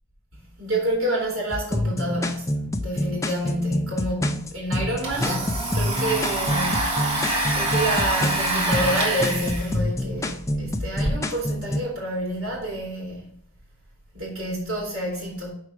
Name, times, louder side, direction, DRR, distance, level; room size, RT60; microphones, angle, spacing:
voice 1, 0.3-5.4 5.7-6.9 7.5-13.3 14.1-15.5, right 1 dB, 70° right, 2.7 m, -28 dB
sound 1, 1.5-11.8, left 1 dB, 15° left, 0.4 m, -27 dB
Domestic sounds home sounds, 4.1-4.2 4.5-11.1, right 2 dB, 25° right, 1.5 m, -26 dB
5.9 x 4.8 x 4.8 m
head